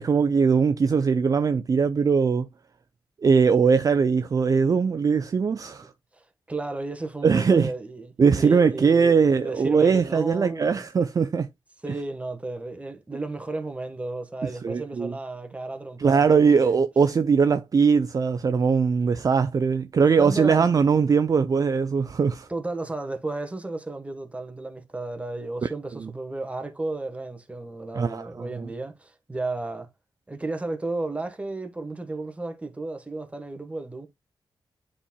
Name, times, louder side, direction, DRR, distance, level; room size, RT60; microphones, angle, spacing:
voice 1, 0.0-2.5 3.2-5.9 7.2-7.7 8.2-11.5 14.4-15.1 16.0-22.5 25.6-25.7 26.0-26.1 27.9-28.7, right 5 dB, 40° right, 0.4 m, -21 dB
voice 2, 6.1-10.9 11.8-16.8 20.0-20.7 22.5-29.9 30.3-34.1, right 2 dB, 15° right, 1.2 m, -33 dB
9.9 x 4.2 x 2.2 m
wide cardioid pair, 110°, 9 cm